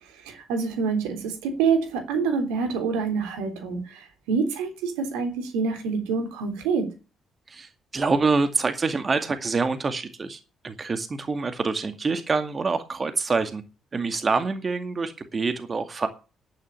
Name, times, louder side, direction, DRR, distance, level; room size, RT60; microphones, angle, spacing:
voice 1, 0.3-6.9, right 5 dB, 85° right, 6 dB, 3.5 m, -26 dB
voice 2, 7.5-13.6 13.9-16.1, right 4 dB, 40° right, 8 dB, 2.1 m, -26 dB
11.0 x 9.9 x 7.2 m, 0.31 s
hypercardioid pair, 50°, 0 cm